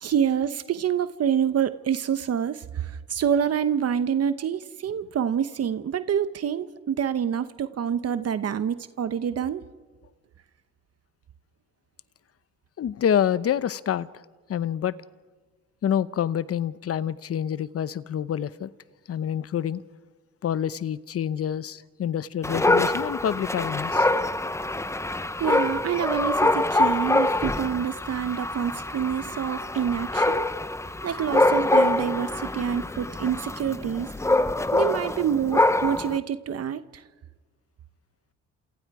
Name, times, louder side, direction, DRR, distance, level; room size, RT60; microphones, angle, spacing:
voice 1, 0.0-9.6 25.4-30.5 31.0-34.1 34.7-37.0, right 8 dB, 55° right, 1.0 m, -27 dB
voice 2, 12.8-14.1 14.5-14.9 15.8-18.7 19.1-19.8 20.4-24.1, left 9 dB, 50° left, 0.9 m, -27 dB
Dog, 22.4-36.2, left 2 dB, 10° left, 0.8 m, -25 dB
28.5 x 27.5 x 4.9 m
cardioid pair, 90°, 30 cm